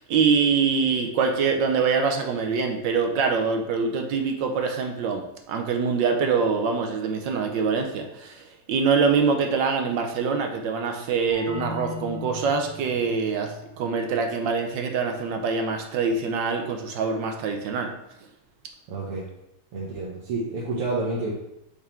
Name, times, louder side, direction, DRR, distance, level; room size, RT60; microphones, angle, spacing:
voice 1, 0.0-17.9, right 5 dB, 70° right, 4 dB, 1.2 m, -24 dB
sound 1, 11.3-16.7, left 2 dB, 45° right, 1.3 m, -41 dB
voice 2, 18.9-19.2 19.7-21.3, right 2 dB, 90° right, -5 dB, 2.0 m, -29 dB
5.8 x 3.7 x 4.3 m, 0.83 s
omnidirectional pair, 2.4 m